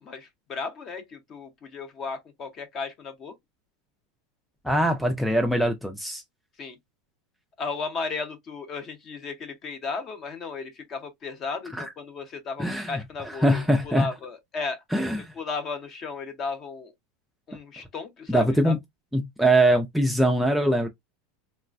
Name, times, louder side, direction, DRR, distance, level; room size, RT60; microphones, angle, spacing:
voice 1, 0.0-3.3 6.6-6.8 7.6-14.8 15.3-16.9 17.5-18.7, left 4 dB, 30° left, 0.7 m, -35 dB
voice 2, 4.6-6.2 11.7-11.9 12.6-13.0 13.3-14.1 14.9-15.3 18.3-18.8 19.1-20.9, right 1 dB, ahead, 0.4 m, -22 dB
3.2 x 2.1 x 2.4 m
supercardioid pair, 145°, 0 cm